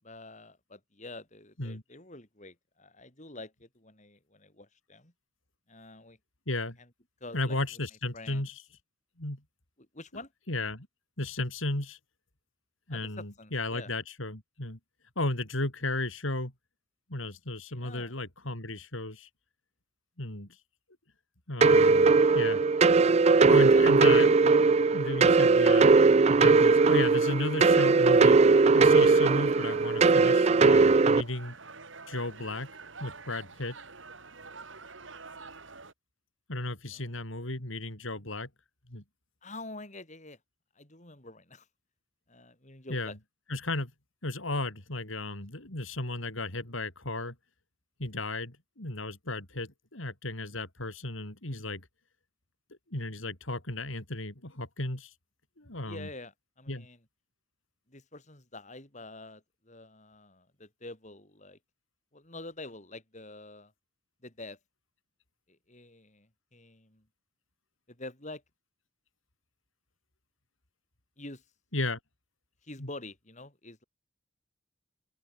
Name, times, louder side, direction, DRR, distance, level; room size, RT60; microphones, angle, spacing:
voice 1, 0.0-5.1 5.7-6.2 6.8-6.9 7.2-7.6 8.1-8.5 9.8-10.3 12.9-13.9 17.7-18.2 23.7-23.9 36.9-37.2 39.4-40.4 40.7-41.7 42.3-43.2 55.8-57.0 57.9-61.6 62.1-63.7 64.2-64.6 65.5-67.1 67.9-68.4 71.2-71.4 72.6-73.8, left 2 dB, 35° left, 6.4 m, -47 dB
voice 2, 6.5-6.8 7.3-8.6 9.2-9.4 10.5-10.9 11.2-12.0 12.9-14.8 15.2-16.5 17.1-19.3 20.2-20.6 21.5-22.6 23.5-28.4 28.7-31.5 32.1-32.7 33.0-33.8 36.5-38.5 38.9-39.0 42.9-43.2 43.5-43.9 44.2-47.3 48.0-51.9 52.9-55.1 55.6-56.1 56.7-56.9 71.7-72.0 72.8-72.9, left 2 dB, 80° left, 4.6 m, -34 dB
sound 1, 21.6-31.2, right 4 dB, 35° right, 0.4 m, -20 dB
sound 2, 26.3-35.9, right 4 dB, 70° right, 4.3 m, -47 dB
open air
head